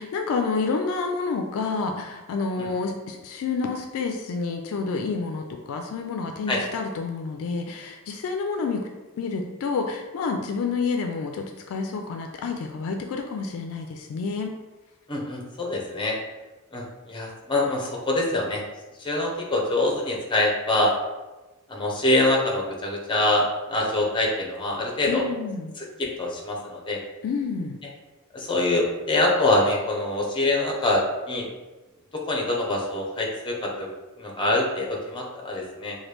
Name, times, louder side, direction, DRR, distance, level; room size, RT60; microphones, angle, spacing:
voice 1, 0.0-8.9 9.2-14.5 25.1-25.7 27.2-27.8, left 4 dB, 70° left, 3 dB, 0.3 m, -29 dB
voice 2, 15.1-16.1 16.7-18.6 19.0-20.9 21.7-25.2 25.8-27.0 28.3-31.5 32.1-33.9 34.2-36.0, left 2 dB, 20° left, -1 dB, 0.6 m, -25 dB
3.0 x 2.2 x 3.2 m, 1.1 s
head